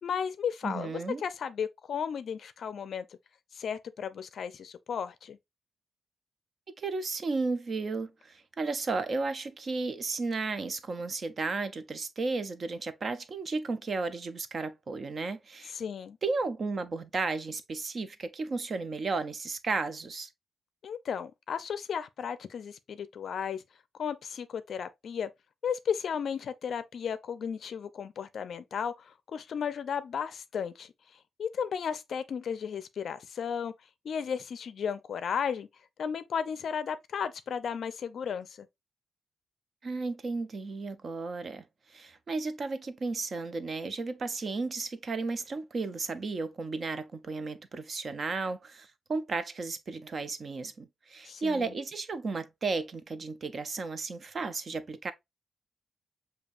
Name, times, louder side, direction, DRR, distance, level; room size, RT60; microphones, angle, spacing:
voice 1, 0.0-3.1 3.5-5.4 15.7-16.2 20.8-23.6 23.9-25.3 25.6-30.9 31.4-33.7 34.0-35.7 36.0-38.7 51.2-51.7, left 7 dB, 55° left, 0.4 m, -34 dB
voice 2, 0.6-1.2 6.8-15.7 16.2-20.3 39.8-41.6 41.9-55.1, right 3 dB, 35° right, 0.5 m, -34 dB
7.0 x 2.7 x 2.4 m
wide cardioid pair, 160°, 0 cm